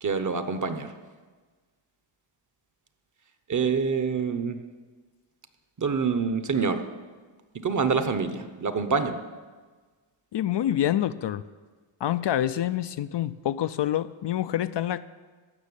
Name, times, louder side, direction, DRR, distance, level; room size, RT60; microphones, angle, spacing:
voice 1, 0.0-0.9 3.5-4.6 5.8-6.8 7.5-9.2, right 5 dB, 40° right, 9 dB, 1.0 m, -26 dB
voice 2, 10.3-11.4 12.0-15.1, left 12 dB, 60° left, 13 dB, 0.5 m, -27 dB
15.0 x 6.4 x 9.9 m, 1.4 s
wide cardioid pair, 140°, 48 cm